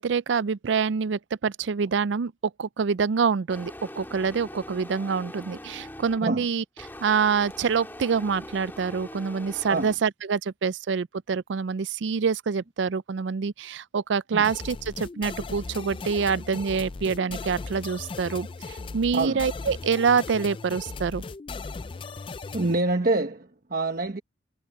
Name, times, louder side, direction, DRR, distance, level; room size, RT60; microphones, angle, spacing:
voice 1, 0.0-2.3 2.6-6.6 7.0-21.2, right 5 dB, 85° right, 0.4 m, -26 dB
sound 1, 3.5-6.3 6.8-10.0, left 1 dB, 10° left, 3.2 m, -42 dB
sound 2, 14.4-22.8, left 3 dB, 30° left, 0.4 m, -37 dB
voice 2, 22.5-24.2, right 2 dB, 50° right, 1.2 m, -26 dB
head